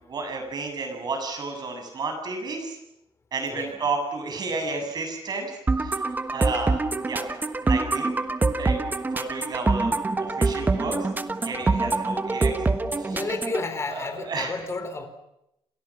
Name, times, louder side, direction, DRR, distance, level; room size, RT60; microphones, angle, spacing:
voice 1, 0.0-2.8 3.3-7.3 7.6-8.1 8.6-8.8 9.1-11.1 11.4-12.6 12.9-13.2 13.9-14.5, right 3 dB, 40° right, 4 dB, 7.5 m, -32 dB
sound 1, 5.7-13.7, right 3 dB, 15° right, 1.3 m, -25 dB
voice 2, 13.1-15.1, left 3 dB, 25° left, 8 dB, 4.2 m, -32 dB
29.5 x 27.5 x 6.2 m, 0.82 s
wide cardioid pair, 175°, 10 cm